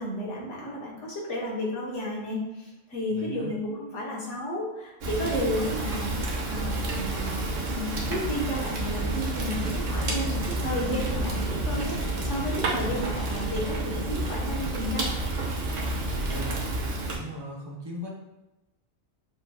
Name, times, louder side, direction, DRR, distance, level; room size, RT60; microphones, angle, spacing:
voice 1, 0.0-6.1 6.5-15.1, equal, 65° left, -4 dB, 1.4 m, -32 dB
voice 2, 3.1-3.5 16.1-16.8 17.0-18.1, equal, 30° right, -3 dB, 0.5 m, -39 dB
Fire, 5.0-17.2, right 2 dB, 70° right, 1.2 m, -29 dB
6.8 x 2.8 x 2.3 m, 0.98 s
omnidirectional pair, 1.3 m